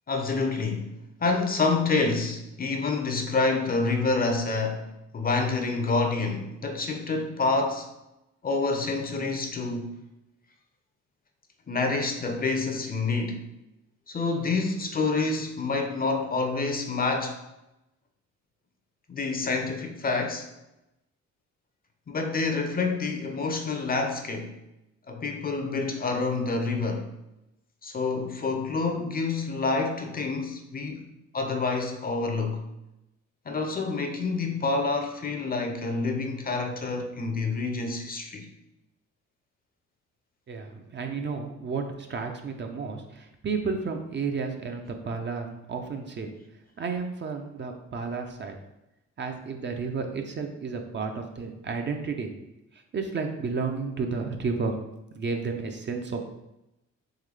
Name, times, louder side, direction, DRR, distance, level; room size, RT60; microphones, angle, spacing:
voice 1, 0.1-0.9 1.2-7.9 8.4-9.9 11.7-13.4 14.1-17.4 19.1-20.5 22.1-24.5 25.1-27.1 27.8-31.1 31.3-32.6 33.5-38.5, left 3 dB, 30° left, 4 dB, 0.5 m, -27 dB
voice 2, 40.5-46.3 46.8-48.5 49.2-52.3 52.9-54.7 55.2-56.3, right 4 dB, 40° right, 4 dB, 0.5 m, -32 dB
3.8 x 3.1 x 3.2 m, 0.91 s
cardioid pair, 90°, 30 cm